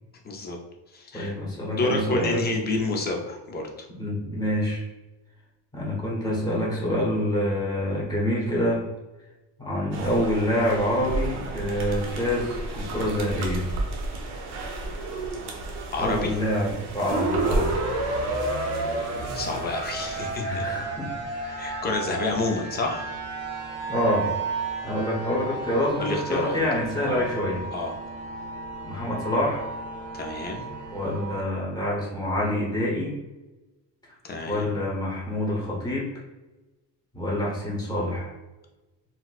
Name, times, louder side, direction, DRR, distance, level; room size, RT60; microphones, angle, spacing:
voice 1, 0.2-0.6 0.9-1.3 1.7-3.7 15.9-16.4 19.3-20.6 21.6-23.1 26.0-26.6 27.1-27.3 27.7-27.9 30.1-30.7 34.2-34.7, left 2 dB, 25° left, 1 dB, 0.4 m, -29 dB
voice 2, 1.1-2.5 4.0-4.8 5.7-8.9 9.6-13.7 16.0-17.7 20.4-21.8 23.9-24.3 24.8-27.6 28.8-29.6 30.9-33.2 34.5-36.1 37.1-38.3, left 1 dB, 10° left, -5 dB, 0.8 m, -26 dB
sound 1, 9.9-20.4, right 2 dB, 75° right, 0.8 m, -33 dB
sound 2, 17.1-31.4, right 2 dB, 40° right, 0.6 m, -32 dB
4.1 x 2.0 x 2.3 m, 1.1 s
cardioid pair, 155°, 41 cm